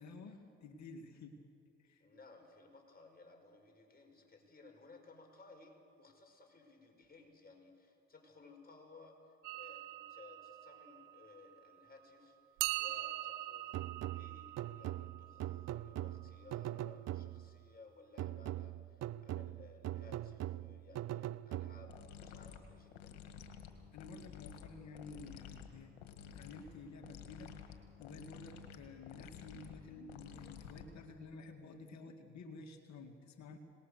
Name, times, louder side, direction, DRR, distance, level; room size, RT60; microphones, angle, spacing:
voice 1, 0.0-1.4 1.8-2.1 23.9-25.9 26.2-27.6 28.0-33.6, left 3 dB, 60° left, 5 dB, 2.1 m, -52 dB
voice 2, 2.0-23.1, left 3 dB, 30° left, 2 dB, 5.8 m, -59 dB
sound 1, 9.4-11.9 12.6-16.5, right 16 dB, 80° right, 1.0 m, -43 dB
sound 2, 13.7-17.6 18.2-22.1, right 14 dB, 55° right, 0.6 m, -42 dB
sound 3, 21.9-31.2, left 7 dB, 90° left, 1.8 m, -52 dB
26.0 x 19.5 x 6.7 m, 2.4 s
hypercardioid pair, 60°, 31 cm